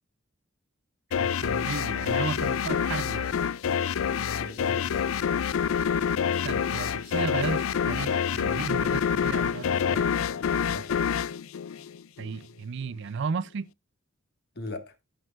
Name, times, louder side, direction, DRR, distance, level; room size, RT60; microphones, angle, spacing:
sound 1, 1.1-12.4, left 7 dB, 85° left, 0.4 m, -27 dB
voice 1, 1.2-3.3 6.3-10.0 12.2-13.7, right 5 dB, 60° right, 0.4 m, -34 dB
voice 2, 4.1-5.2 9.8-11.1 14.5-14.9, left 1 dB, 55° left, 1.7 m, -41 dB
13.5 x 6.4 x 2.4 m
head